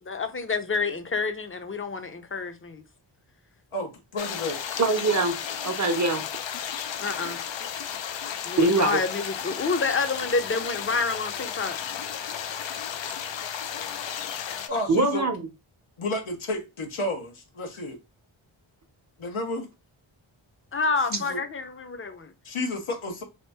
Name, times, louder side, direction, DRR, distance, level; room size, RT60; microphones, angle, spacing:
voice 1, 0.1-2.8 7.0-7.4 8.4-11.8 20.7-22.3, left 4 dB, 25° left, 0.6 m, -28 dB
voice 2, 3.7-4.6 14.7-15.2 16.0-18.0 19.2-19.7 21.1-21.4 22.4-23.2, left 2 dB, 85° left, 1.0 m, -31 dB
sound 1, 4.2-14.7, left 8 dB, 65° left, 0.6 m, -33 dB
voice 3, 4.8-5.4 5.6-6.2 8.6-9.0 14.9-15.4, right 3 dB, 35° right, 0.7 m, -22 dB
2.9 x 2.6 x 3.4 m
cardioid pair, 45°, 48 cm